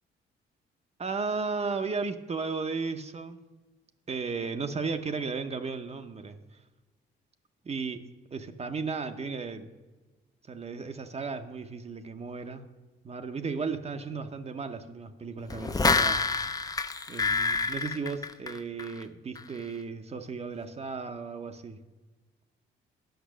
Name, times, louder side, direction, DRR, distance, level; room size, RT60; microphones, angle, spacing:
voice 1, 1.0-3.4 4.1-6.6 7.6-8.0 8.3-9.7 10.5-12.6 13.0-16.2 17.1-21.8, right 4 dB, 30° right, 7 dB, 0.7 m, -35 dB
sound 1, 15.5-19.0 19.4-19.5, left 4 dB, 20° left, 0.5 m, -27 dB
10.5 x 5.9 x 6.2 m, 1.2 s
cardioid pair, 90°, 20 cm